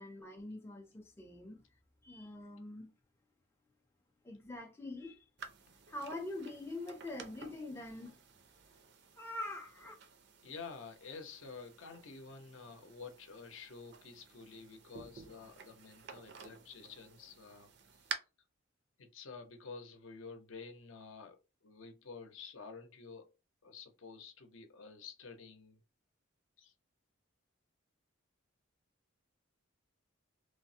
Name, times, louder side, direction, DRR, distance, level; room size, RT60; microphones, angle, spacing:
voice 1, 0.0-1.6 2.0-2.9 4.2-5.2 5.9-8.1 9.2-9.9, left 2 dB, 10° left, 0.3 m, -44 dB
sound 1, 5.4-18.1, right 6 dB, 55° right, 0.4 m, -51 dB
voice 2, 10.4-18.1 19.0-23.3 23.6-25.8 26.6-26.7, left 5 dB, 70° left, 0.6 m, -50 dB
3.2 x 2.0 x 2.6 m
head